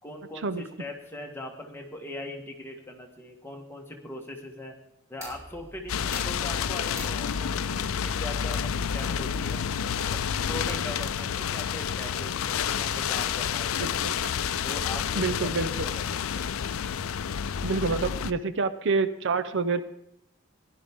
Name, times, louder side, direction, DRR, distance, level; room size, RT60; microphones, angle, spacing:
voice 1, 0.0-4.7 5.1-9.7 10.0-14.0 14.6-15.5 15.8-16.0 16.3-16.5, left 1 dB, 10° left, 1 dB, 1.7 m, -40 dB
sound 1, 5.2-10.2, equal, 15° right, 6.4 m, -47 dB
sound 2, 5.9-18.3, left 7 dB, 85° left, 0.5 m, -29 dB
voice 2, 13.8-14.3 15.1-15.9 17.6-19.8, right 4 dB, 60° right, 11 dB, 0.7 m, -28 dB
16.0 x 11.0 x 3.7 m, 0.81 s
head